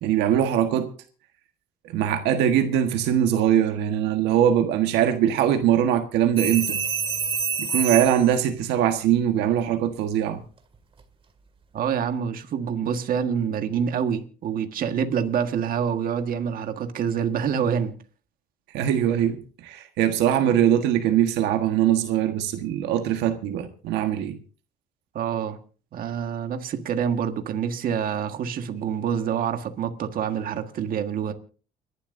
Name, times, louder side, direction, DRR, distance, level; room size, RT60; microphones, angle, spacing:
voice 1, 0.0-0.9 1.8-6.8 7.6-10.4 18.7-24.4, right 10 dB, 90° right, 1.5 m, -22 dB
sound 1, 6.4-8.4 10.7-11.0, right 6 dB, 35° right, 2.2 m, -27 dB
voice 2, 11.7-17.9 25.2-25.6 25.9-31.3, right 7 dB, 55° right, 1.6 m, -26 dB
29.5 x 11.5 x 2.7 m
cardioid pair, 110°, 17 cm